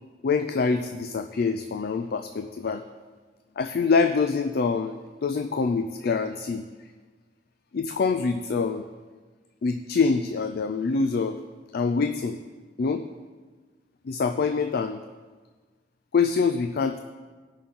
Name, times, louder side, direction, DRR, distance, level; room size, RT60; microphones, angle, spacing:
voice 1, 0.2-2.8 3.6-5.0 5.2-6.7 7.7-8.8 9.6-11.4 11.7-12.4 12.8-13.0 14.1-15.0 16.1-17.0, left 4 dB, 55° left, 8 dB, 0.4 m, -25 dB
18.0 x 6.4 x 3.7 m, 1.4 s
head